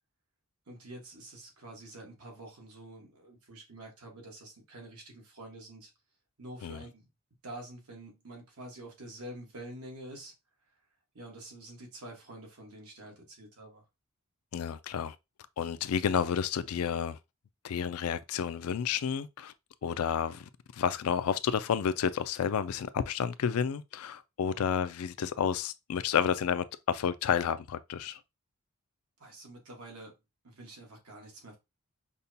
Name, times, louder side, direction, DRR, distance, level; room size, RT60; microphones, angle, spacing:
voice 1, 0.7-5.9 6.4-7.0 7.4-10.3 11.1-13.8 29.2-30.1 30.4-31.6, right 1 dB, 85° right, 1.5 m, -47 dB
voice 2, 14.5-15.2 15.6-17.2 17.6-19.5 19.8-28.2, left 7 dB, 75° left, 0.4 m, -31 dB
5.3 x 2.2 x 2.7 m
head